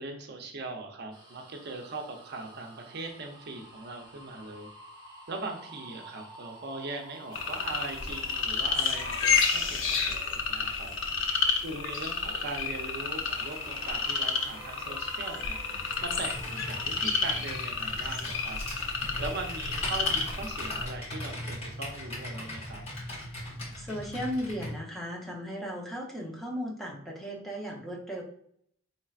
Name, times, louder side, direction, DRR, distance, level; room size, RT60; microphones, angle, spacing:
voice 1, 0.0-4.7 5.3-10.9 11.6-15.6 16.0-18.6 19.2-22.8, right 3 dB, 55° right, 3 dB, 0.6 m, -40 dB
sound 1, 1.1-11.0 11.6-16.8, right 1 dB, 20° right, 1.2 m, -51 dB
sound 2, 7.3-20.8, left 5 dB, 70° left, 0.6 m, -30 dB
Computer keyboard, 15.7-24.8, left 1 dB, 35° left, 1.5 m, -40 dB
voice 2, 23.8-28.2, equal, ahead, -2 dB, 0.7 m, -36 dB
4.3 x 3.2 x 2.4 m, 0.67 s
head